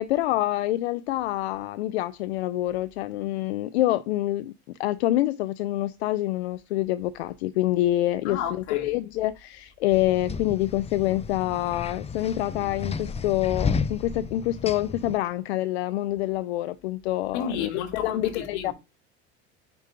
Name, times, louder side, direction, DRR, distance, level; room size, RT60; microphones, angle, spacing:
voice 1, 0.0-4.5 4.8-18.7, left 15 dB, 90° left, 0.5 m, -26 dB
voice 2, 8.3-8.9 17.3-18.7, left 7 dB, 65° left, 1.9 m, -32 dB
sound 1, 9.9-15.2, left 5 dB, 20° left, 0.6 m, -32 dB
5.3 x 4.5 x 5.5 m
hypercardioid pair, 80°, 31 cm